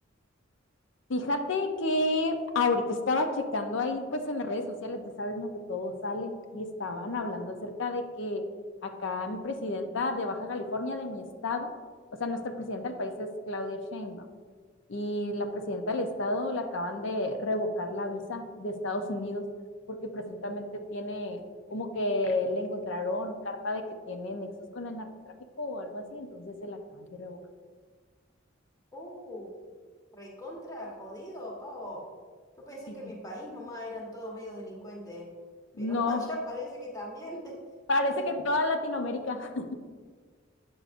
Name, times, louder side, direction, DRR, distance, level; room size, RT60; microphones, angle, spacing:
voice 1, 1.1-8.4 8.8-11.7 12.2-14.3 14.9-19.4 19.9-21.4 21.7-27.4 33.0-33.1 35.8-36.2 37.9-39.8, left 2 dB, 65° left, 6 dB, 0.7 m, -31 dB
voice 2, 28.9-29.5 30.1-32.0 32.6-35.3 35.8-37.6 38.1-38.3, left 1 dB, 20° left, -3 dB, 1.2 m, -40 dB
8.6 x 6.4 x 2.5 m, 1.6 s
head